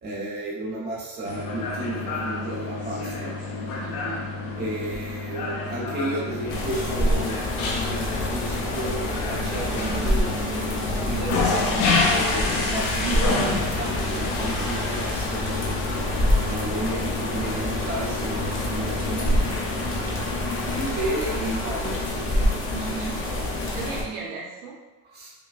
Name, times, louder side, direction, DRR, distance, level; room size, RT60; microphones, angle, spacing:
voice 1, 0.0-3.3 4.5-10.3 11.0-15.7 16.4-19.6 20.7-22.5 25.0-25.3, right 1 dB, 20° right, -5 dB, 0.9 m, -33 dB
sound 1, 1.2-20.9, left 3 dB, 80° left, 1.0 m, -29 dB
voice 2, 3.8-4.2 13.0-13.5 22.7-23.1 23.7-24.7, right 5 dB, 70° right, -2 dB, 0.9 m, -35 dB
sound 2, 6.5-24.0, left 1 dB, 30° left, 0.6 m, -27 dB
5.2 x 2.2 x 2.4 m, 1.1 s
cardioid pair, 135°, 45 cm